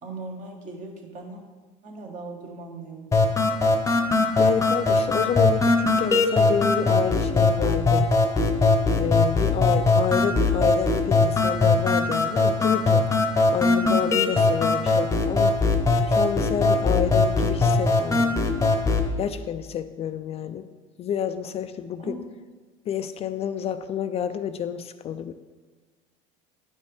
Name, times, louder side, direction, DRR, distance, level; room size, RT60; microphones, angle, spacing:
voice 1, 0.0-1.4 1.8-3.2 22.0-22.2, right 3 dB, 45° right, 1 dB, 1.5 m, -38 dB
sound 1, 3.1-19.1, left 3 dB, 20° left, 0.8 m, -21 dB
voice 2, 4.4-8.1 9.0-13.0 13.5-15.6 16.1-18.4 19.2-20.7 21.0-22.2 22.9-25.3, left 8 dB, 40° left, 11 dB, 0.4 m, -29 dB
9.2 x 5.2 x 3.4 m, 1.4 s
supercardioid pair, 95°, 17 cm